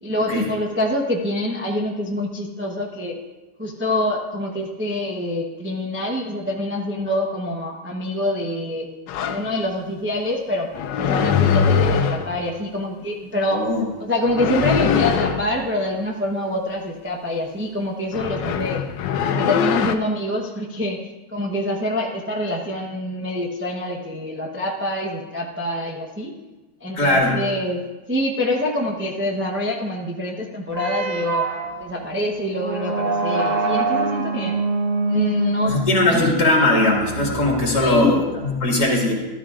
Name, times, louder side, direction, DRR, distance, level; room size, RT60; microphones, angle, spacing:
voice 1, 0.0-3.2 3.6-8.9 9.3-10.7 11.0-13.7 14.0-18.8 19.2-26.3 26.8-31.5 31.8-34.6 35.0-35.8 36.0-36.3 37.8-38.2, left 1 dB, 10° right, -1 dB, 0.5 m, -26 dB
sound 1, 9.1-9.5 10.7-12.4 14.2-15.5 18.1-19.9, left 7 dB, 85° left, 1.3 m, -21 dB
voice 2, 13.5-13.8 26.9-27.3 35.6-39.1, left 2 dB, 65° left, -2 dB, 2.7 m, -19 dB
sound 2, 30.7-38.5, right 3 dB, 50° right, 1.3 m, -25 dB
13.0 x 13.0 x 2.5 m, 1.2 s
omnidirectional pair, 1.9 m